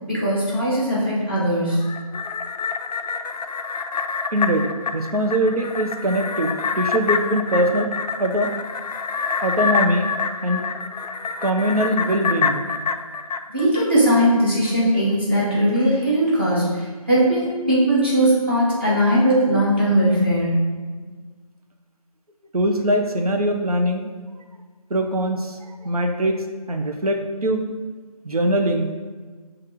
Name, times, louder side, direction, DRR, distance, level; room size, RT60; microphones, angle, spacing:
voice 1, 0.0-1.8 13.5-20.6, equal, 20° right, -10 dB, 0.7 m, -19 dB
sound 1, 1.7-14.3 14.6-14.7, left 5 dB, 80° left, 0.4 m, -27 dB
voice 2, 4.3-7.9 8.2-8.5 9.4-10.1 10.4-10.6 11.4-12.6 22.5-24.1 24.9-25.6 25.8-26.4 26.7-27.7 28.2-28.9, right 1 dB, 70° right, 4 dB, 0.7 m, -22 dB
6.4 x 2.5 x 3.0 m, 1.4 s
figure-of-eight pair, 165°, 20 cm